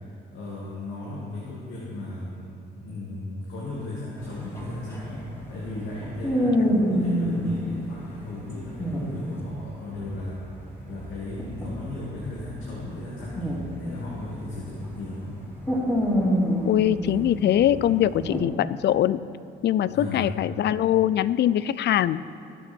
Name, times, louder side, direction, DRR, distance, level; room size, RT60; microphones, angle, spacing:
voice 1, 0.3-2.5 2.8-10.4 10.9-15.4 19.9-20.3, left 2 dB, 85° left, -6 dB, 2.4 m, -36 dB
sound 1, 4.2-7.5 8.5-9.6 9.8-15.0 15.3-18.4, equal, 15° left, 3.2 m, -27 dB
voice 2, 16.7-19.2 19.6-22.2, left 11 dB, 60° left, 16 dB, 0.4 m, -22 dB
20.0 x 6.9 x 4.4 m, 2.8 s
cardioid pair, 90°, 20 cm